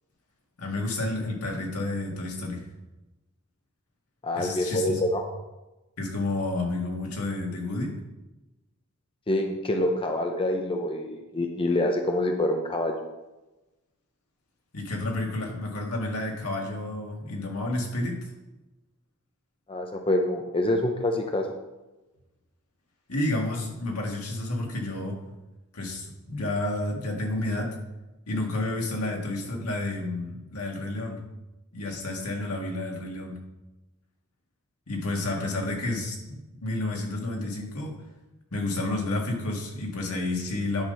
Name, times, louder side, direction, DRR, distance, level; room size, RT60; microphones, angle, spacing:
voice 1, 0.6-2.6 4.4-5.1 6.0-8.0 14.7-18.2 23.1-25.2 25.7-27.7 28.3-31.2 31.7-33.4 34.9-38.0 38.5-40.8, left 2 dB, 85° left, 0 dB, 1.9 m, -30 dB
voice 2, 4.2-5.2 9.3-12.9 19.7-21.5, left 1 dB, 25° left, 4 dB, 0.6 m, -26 dB
10.5 x 4.0 x 5.4 m, 1.1 s
head